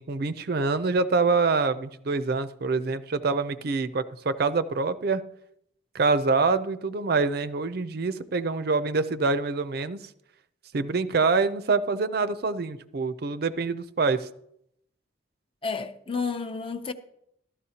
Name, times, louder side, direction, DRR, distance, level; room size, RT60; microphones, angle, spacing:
voice 1, 0.0-5.2 5.9-10.0 10.7-14.3, right 4 dB, 55° right, 0.5 m, -25 dB
voice 2, 15.6-16.9, left 4 dB, 30° left, 0.6 m, -31 dB
14.0 x 12.5 x 2.8 m
head